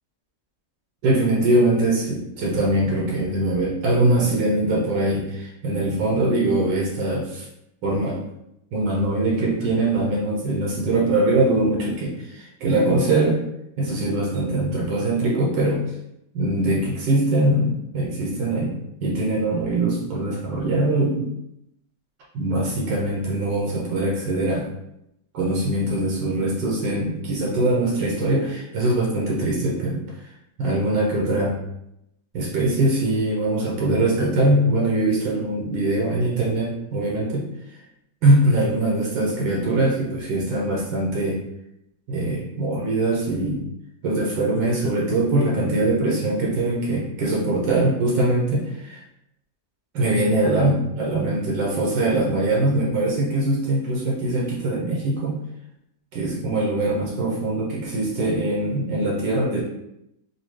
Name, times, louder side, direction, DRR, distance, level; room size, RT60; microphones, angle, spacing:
voice 1, 1.0-7.5 7.8-8.2 8.7-13.4 13.8-15.8 16.3-21.3 22.3-24.7 25.3-30.0 30.6-31.6 32.3-37.5 38.2-41.4 42.1-43.6 44.0-49.0 49.9-55.4 56.1-59.6, right 2 dB, 75° right, -3 dB, 1.4 m, -22 dB
4.2 x 2.3 x 3.1 m, 0.81 s
omnidirectional pair, 2.0 m